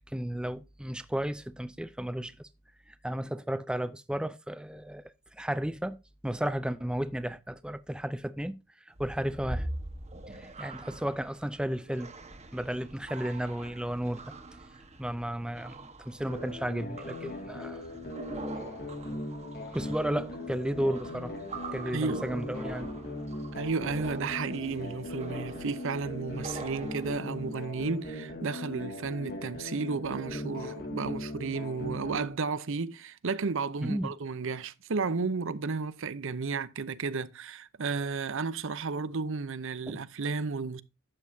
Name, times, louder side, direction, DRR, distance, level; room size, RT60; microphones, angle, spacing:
voice 1, 0.1-2.5 2.9-5.0 5.3-6.0 6.2-8.6 8.9-9.7 10.3-12.1 12.5-14.3 15.0-17.8 19.1-19.2 19.7-21.3 21.7-22.9 33.8-34.1 39.9-40.0, right 1 dB, 5° right, 0.5 m, -33 dB
sound 1, 8.9-27.6, right 2 dB, 30° right, 1.2 m, -44 dB
sound 2, 16.3-32.3, left 1 dB, 45° left, 2.0 m, -39 dB
voice 2, 21.9-22.3 23.5-40.8, right 4 dB, 60° right, 0.7 m, -33 dB
11.5 x 8.4 x 2.7 m
head